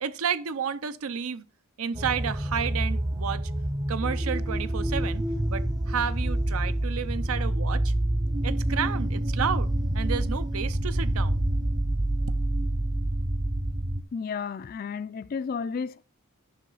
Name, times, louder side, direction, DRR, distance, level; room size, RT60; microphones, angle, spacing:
voice 1, 0.0-1.4 1.8-3.5 3.9-7.9 8.4-11.4, right 7 dB, 80° right, 0.6 m, -31 dB
sound 1, 1.9-14.0, right 1 dB, 20° right, 0.5 m, -27 dB
voice 2, 14.1-16.0, left 5 dB, 40° left, 0.3 m, -32 dB
10.5 x 5.6 x 4.0 m
head